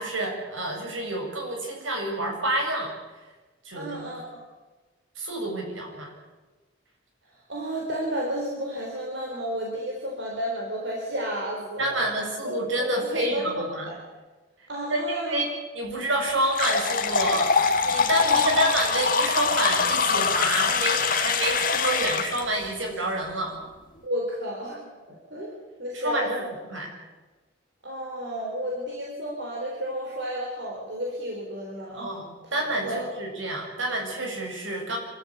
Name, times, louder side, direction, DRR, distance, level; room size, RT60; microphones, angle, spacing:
voice 1, 0.0-2.9 3.6-4.0 5.2-6.1 11.8-13.9 14.9-23.6 25.9-26.9 32.0-32.2 32.5-35.0, right 1 dB, 75° right, 1 dB, 7.1 m, -28 dB
voice 2, 3.7-4.4 7.3-12.1 12.4-14.0 14.7-15.4 18.2-18.6 24.0-24.9 25.3-25.5 25.8-26.5 27.8-32.1 32.4-32.6 32.8-33.1, equal, 60° right, -2 dB, 4.4 m, -32 dB
sound 1, 16.5-22.4, left 5 dB, 45° left, 1.8 m, -23 dB
27.0 x 14.0 x 8.4 m, 1.2 s
head